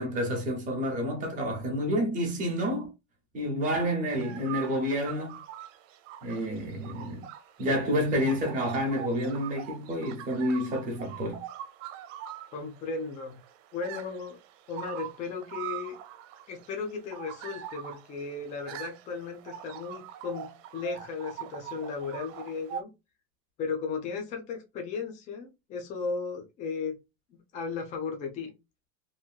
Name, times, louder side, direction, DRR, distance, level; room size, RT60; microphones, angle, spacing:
voice 1, 0.0-2.9 3.3-5.4 6.2-7.3 7.6-11.4, equal, 20° right, 0.8 m, -29 dB
sound 1, 4.1-22.8, right 11 dB, 85° right, 0.6 m, -43 dB
voice 2, 12.5-13.3 13.7-14.4 14.7-16.0 16.5-20.5 20.7-22.9 23.6-27.0 27.3-28.5, left 4 dB, 20° left, 0.4 m, -35 dB
2.8 x 2.7 x 2.2 m
supercardioid pair, 170°, 38 cm